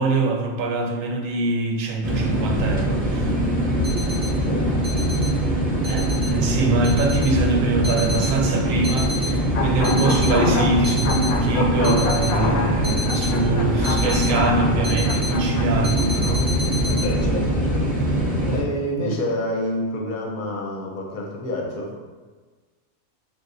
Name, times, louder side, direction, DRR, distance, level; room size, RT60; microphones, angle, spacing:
voice 1, 0.0-3.3 5.8-16.5 19.0-19.2, right 3 dB, 70° right, 2 dB, 0.9 m, -24 dB
sound 1, 2.0-18.6, right 1 dB, 10° right, 0.6 m, -22 dB
voice 2, 3.3-3.6 4.3-4.9 16.9-22.0, left 1 dB, 45° left, -1 dB, 0.7 m, -29 dB
sound 2, 3.8-4.3 4.8-5.3 5.8-6.3 6.8-7.3 7.8-8.3 8.8-9.3 9.8-10.3 10.8-11.3 11.8-12.3 12.8-13.3 13.8-14.3 14.8-15.3 15.8-17.0, left 2 dB, 55° right, 0.3 m, -31 dB
sound 3, 9.5-15.6, left 3 dB, 80° left, 1.0 m, -27 dB
6.3 x 2.4 x 2.6 m, 1.4 s
omnidirectional pair, 1.5 m